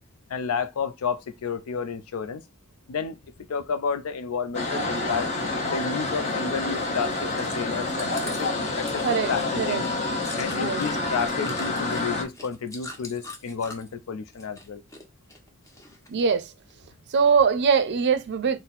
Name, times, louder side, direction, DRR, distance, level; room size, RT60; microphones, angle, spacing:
voice 1, 0.3-2.4 2.9-3.2 3.5-5.3 5.7-8.5 8.8-9.0 9.3-9.9 10.4-14.8, left 6 dB, 80° left, 0.5 m, -31 dB
sound 1, 4.5-12.2, left 2 dB, 35° left, 0.9 m, -28 dB
Chewing mastication, 7.0-14.0 14.3-15.0 15.3-16.2 16.7-16.8, left 2 dB, 15° left, 0.8 m, -42 dB
voice 2, 9.0-9.8 10.5-10.8 16.1-16.5 17.1-18.6, right 6 dB, 55° right, 0.5 m, -22 dB
4.2 x 2.0 x 4.0 m
head